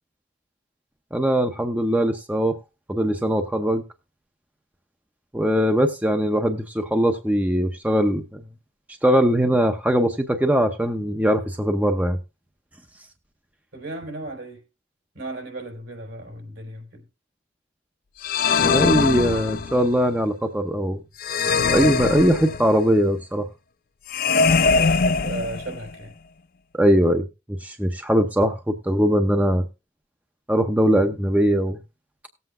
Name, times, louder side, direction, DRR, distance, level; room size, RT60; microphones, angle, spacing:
voice 1, 1.1-2.6 2.9-3.8 5.3-8.4 9.0-12.2 18.6-21.0 21.7-23.5 26.7-29.6 30.5-31.8, equal, 10° right, 0.6 m, -21 dB
voice 2, 13.7-14.6 15.1-17.1 24.7-26.1 28.9-29.0, right 2 dB, 75° right, 4.1 m, -35 dB
sound 1, 18.2-19.9 21.2-22.9 24.1-25.9, left 5 dB, 50° left, 0.4 m, -22 dB
18.5 x 7.9 x 2.4 m
head